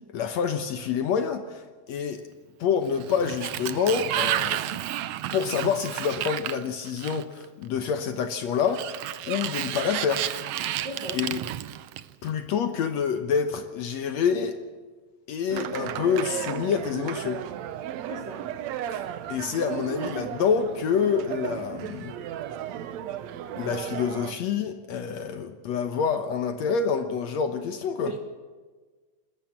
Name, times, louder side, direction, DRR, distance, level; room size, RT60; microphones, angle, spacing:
voice 1, 0.1-2.2 2.6-4.8 5.3-10.3 10.8-10.9 11.1-11.4 12.2-14.6 15.3-17.4 18.9-22.1 23.6-28.1, left 6 dB, 65° left, 7 dB, 2.1 m, -27 dB
Sliding door, 2.8-7.4 8.6-12.3, right 13 dB, 85° right, 1.3 m, -31 dB
voice 2, 10.8-11.2 18.1-18.4 28.0-28.2, right 2 dB, 40° right, 3 dB, 2.1 m, -36 dB
sound 1, 15.5-24.3, right 10 dB, 70° right, 1.9 m, -35 dB
28.0 x 13.5 x 7.4 m, 1.4 s
omnidirectional pair, 3.7 m